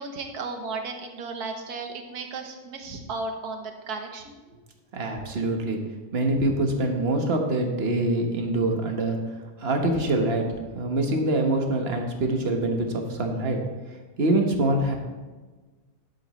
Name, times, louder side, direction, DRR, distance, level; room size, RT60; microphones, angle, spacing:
voice 1, 0.0-4.4, right 3 dB, 70° right, 4 dB, 1.6 m, -34 dB
voice 2, 4.9-5.8 6.1-9.2 9.6-10.5 10.7-13.6 14.2-15.0, right 2 dB, 40° right, 3 dB, 1.3 m, -24 dB
11.0 x 8.4 x 3.1 m, 1.3 s
omnidirectional pair, 1.7 m